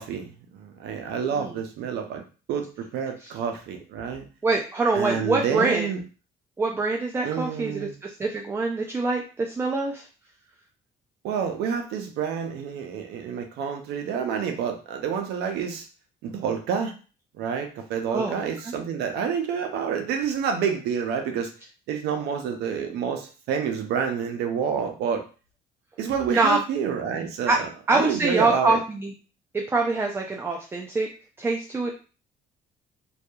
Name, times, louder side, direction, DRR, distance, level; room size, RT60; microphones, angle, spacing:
voice 1, 0.0-2.2 2.5-4.3 4.9-6.0 7.2-7.9 11.2-15.8 16.2-16.9 17.4-21.5 21.9-25.2 26.0-28.8, right 7 dB, 80° right, 5 dB, 0.5 m, -28 dB
voice 2, 4.4-5.9 6.6-10.1 18.1-18.3 18.6-18.7 26.3-26.6 27.5-27.6 27.9-29.1 29.5-31.1 31.4-31.9, right 3 dB, 15° right, 1 dB, 0.3 m, -24 dB
2.7 x 2.3 x 2.2 m, 0.35 s
cardioid pair, 110°, 17 cm